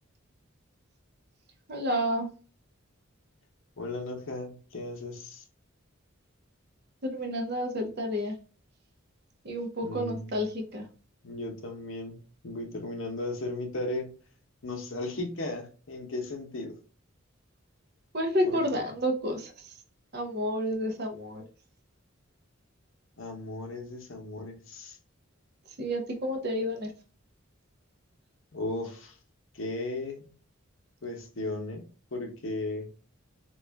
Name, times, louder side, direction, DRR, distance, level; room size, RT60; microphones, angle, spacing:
voice 1, 1.7-2.3 7.0-8.4 9.4-10.9 18.1-19.5 20.1-21.4 25.8-26.9, equal, 50° right, 0.7 m, -30 dB
voice 2, 3.8-5.4 9.8-10.3 11.2-12.2 12.4-14.1 14.6-16.8 18.4-18.6 23.2-25.0 28.5-29.2 29.5-30.2 31.0-31.8 32.1-32.9, left 2 dB, 65° left, 0.8 m, -36 dB
3.0 x 2.4 x 3.3 m
head